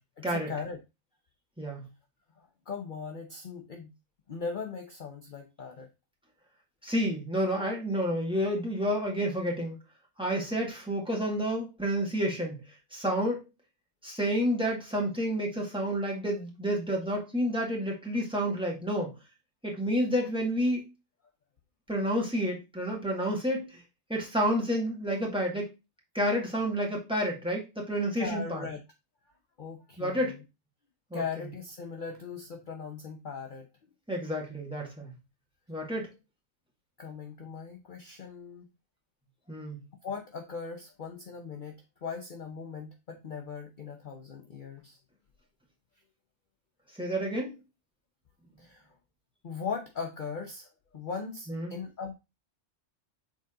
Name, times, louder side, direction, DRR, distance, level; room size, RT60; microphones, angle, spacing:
voice 1, 0.2-0.8 2.4-3.9 4.3-5.9 28.2-28.8 29.6-30.4 31.1-33.7 37.0-38.7 40.0-45.0 48.6-48.9 49.4-52.1, left 5 dB, 45° left, 3 dB, 0.8 m, -39 dB
voice 2, 6.8-9.8 10.2-12.6 12.9-13.4 14.0-19.1 19.6-20.8 21.9-23.8 24.1-25.7 26.1-28.6 30.0-30.4 31.1-31.2 34.1-35.1 35.7-36.1 39.5-39.8 47.0-47.5 51.5-51.7, equal, 5° right, -1 dB, 2.0 m, -30 dB
6.5 x 4.0 x 3.7 m, 0.26 s
omnidirectional pair, 1.3 m